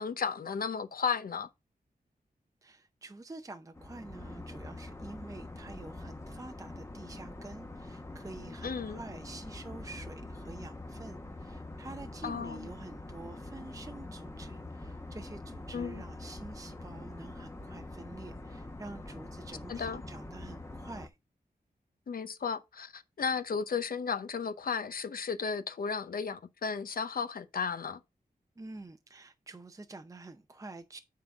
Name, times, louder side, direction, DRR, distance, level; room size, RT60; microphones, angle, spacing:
voice 1, 0.0-1.5 8.6-9.0 12.2-12.7 15.7-16.0 19.7-20.0 22.1-28.0, left 6 dB, 70° left, 0.7 m, -34 dB
voice 2, 2.6-21.1 28.6-31.0, right 2 dB, 20° right, 0.6 m, -48 dB
sound 1, 3.7-21.1, left 2 dB, 15° left, 0.9 m, -44 dB
9.3 x 3.9 x 4.6 m
wide cardioid pair, 130°, 16 cm